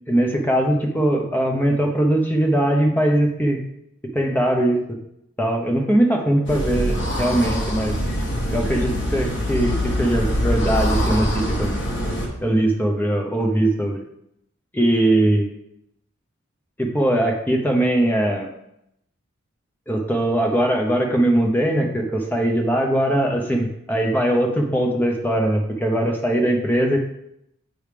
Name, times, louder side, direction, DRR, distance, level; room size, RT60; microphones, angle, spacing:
voice 1, 0.1-3.6 4.1-5.0 5.4-7.9 8.5-11.7 12.4-14.0 14.7-15.5 16.8-18.5 19.9-27.0, right 1 dB, 10° left, 1 dB, 0.8 m, -20 dB
sound 1, 6.5-12.3, equal, 55° left, 1.4 m, -24 dB
7.8 x 3.4 x 5.0 m, 0.79 s
head